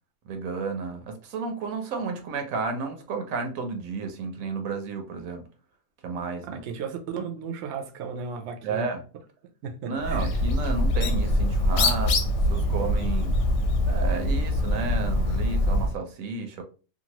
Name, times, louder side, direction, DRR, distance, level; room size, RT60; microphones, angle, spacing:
voice 1, 0.3-5.4 6.0-6.6 8.6-9.0 9.9-12.2 12.5-13.4 13.9-16.6, right 4 dB, 85° right, 1.1 m, -32 dB
voice 2, 6.5-8.9 9.6-10.3, right 6 dB, 65° right, 0.8 m, -35 dB
Bird, 10.0-16.0, left 1 dB, 70° left, 0.8 m, -24 dB
2.8 x 2.3 x 2.9 m
omnidirectional pair, 1.4 m